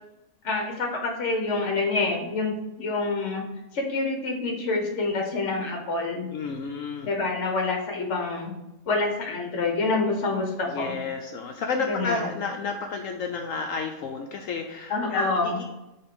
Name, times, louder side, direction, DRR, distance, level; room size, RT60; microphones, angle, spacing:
voice 1, 0.4-3.4 3.7-6.3 7.0-8.5 8.9-11.0 11.9-12.3 14.9-15.6, left 3 dB, 55° left, 2 dB, 1.5 m, -27 dB
voice 2, 6.3-7.1 10.7-15.6, left 4 dB, 70° left, 4 dB, 0.9 m, -31 dB
5.6 x 3.7 x 5.2 m, 0.96 s
omnidirectional pair, 1.6 m